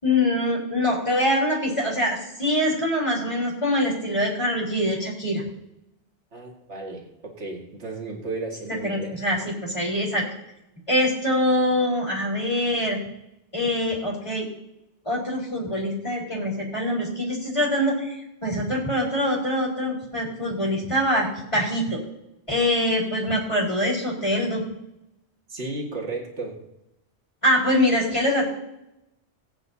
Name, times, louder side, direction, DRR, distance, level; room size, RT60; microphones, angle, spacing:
voice 1, 0.0-5.4 8.8-10.2 10.9-13.0 13.5-14.5 15.1-18.1 18.4-22.0 22.5-24.6 27.4-28.4, left 1 dB, 25° left, -3 dB, 4.0 m, -24 dB
voice 2, 6.3-9.2 25.5-26.6, right 3 dB, 70° right, -1 dB, 2.4 m, -34 dB
21.0 x 8.6 x 2.8 m, 0.89 s
omnidirectional pair, 1.2 m